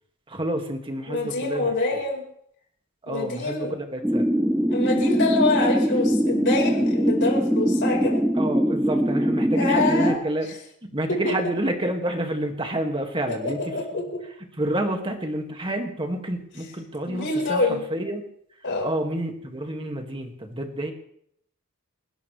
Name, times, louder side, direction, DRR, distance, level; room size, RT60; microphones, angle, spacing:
voice 1, 0.3-2.0 3.0-4.3 8.4-10.5 10.8-13.8 14.6-18.2 18.8-20.9, right 1 dB, 25° right, 4 dB, 2.1 m, -29 dB
voice 2, 1.1-2.2 3.1-3.7 4.7-8.2 9.5-10.2 13.3-13.8 17.1-17.8 18.6-18.9, left 3 dB, 55° left, -1 dB, 4.8 m, -25 dB
sound 1, 4.0-10.2, equal, 5° right, 0.7 m, -22 dB
29.5 x 13.0 x 3.3 m, 0.68 s
head